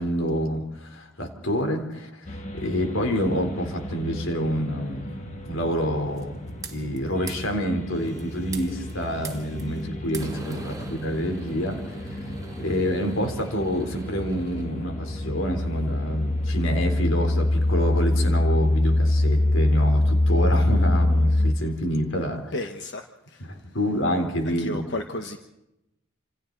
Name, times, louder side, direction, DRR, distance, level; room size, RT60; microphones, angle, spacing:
voice 1, 0.0-6.4 6.7-12.2 12.6-22.7 23.4-24.9, equal, 80° left, 5 dB, 3.8 m, -28 dB
sound 1, 2.3-21.5, left 1 dB, 35° left, 2.2 m, -26 dB
sound 2, 6.2-7.0 7.3-7.5 8.0-9.8 10.1-14.7, right 3 dB, 20° right, 1.9 m, -42 dB
voice 2, 22.5-23.0 24.6-25.4, left 2 dB, 60° left, 5 dB, 1.3 m, -32 dB
28.0 x 27.5 x 4.1 m, 0.90 s
head